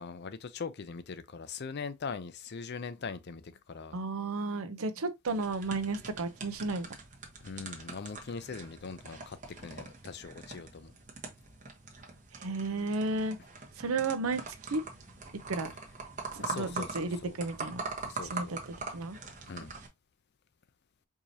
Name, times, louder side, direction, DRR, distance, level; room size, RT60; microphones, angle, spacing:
voice 1, 0.0-4.0 7.4-10.9 16.4-17.4 18.0-18.6 19.5-19.7, left 5 dB, 50° left, 0.5 m, -41 dB
voice 2, 3.9-6.9 12.3-13.4 13.8-14.8 15.3-15.7 16.3-17.8 18.3-18.6 18.9-19.2, right 3 dB, 80° right, 0.6 m, -33 dB
sound 1, 5.3-19.9, right 4 dB, 35° right, 1.0 m, -43 dB
4.7 x 2.8 x 2.7 m
head